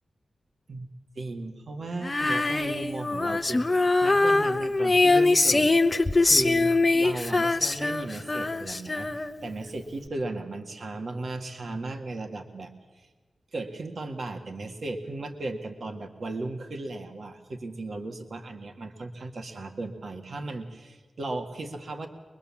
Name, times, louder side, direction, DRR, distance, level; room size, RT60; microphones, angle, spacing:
voice 1, 1.1-5.8 6.2-13.1 13.5-22.1, right 2 dB, 50° right, 5 dB, 1.7 m, -36 dB
Female singing, 2.0-9.5, left 2 dB, 25° left, 0.8 m, -23 dB
23.0 x 22.0 x 7.3 m, 1.3 s
wide cardioid pair, 165°, 0 cm